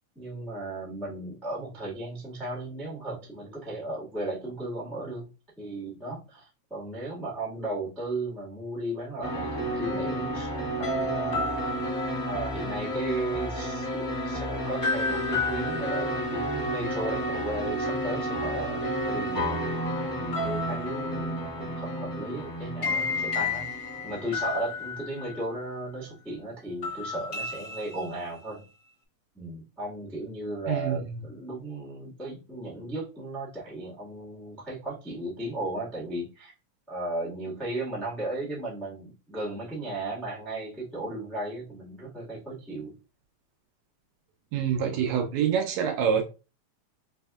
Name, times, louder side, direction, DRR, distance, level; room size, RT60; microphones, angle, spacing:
voice 1, 0.1-5.3 5.6-11.8 12.3-19.7 20.2-28.6 29.3-36.5 36.9-42.9, right 2 dB, ahead, 0.5 m, -35 dB
sound 1, 9.2-25.8 26.8-28.5, left 1 dB, 30° left, 1.4 m, -31 dB
voice 2, 30.7-31.1 44.5-46.2, right 8 dB, 80° right, 1.8 m, -26 dB
4.8 x 2.6 x 2.3 m
omnidirectional pair, 3.4 m